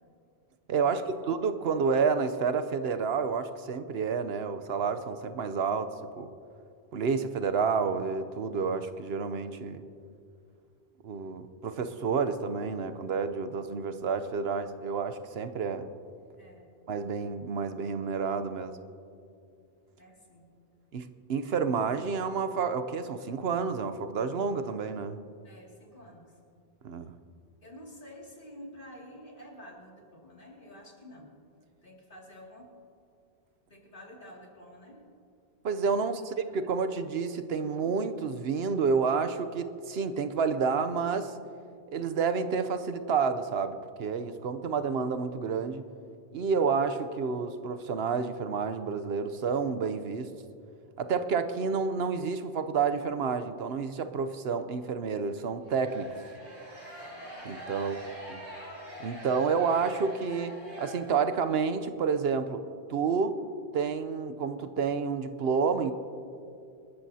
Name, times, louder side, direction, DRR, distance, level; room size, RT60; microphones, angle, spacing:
voice 1, 0.7-5.9 6.2-6.3 6.9-9.8 11.0-15.9 16.9-18.8 20.9-25.2 26.8-27.1 35.6-41.3 41.9-45.9 46.3-50.3 51.0-56.1 57.4-58.0 58.3-58.4 59.0-62.6 62.9-63.4 63.7-65.9, right 5 dB, 70° right, 10 dB, 0.9 m, -29 dB
voice 2, 20.0-20.5 25.4-26.3 27.6-31.3 31.8-32.7 33.7-35.1 35.9-36.6 57.7-58.1, equal, 50° left, -2 dB, 2.6 m, -50 dB
sound 1, 55.6-61.6, equal, 55° right, 4.6 m, -44 dB
25.5 x 13.5 x 2.8 m, 2.4 s
omnidirectional pair, 1.1 m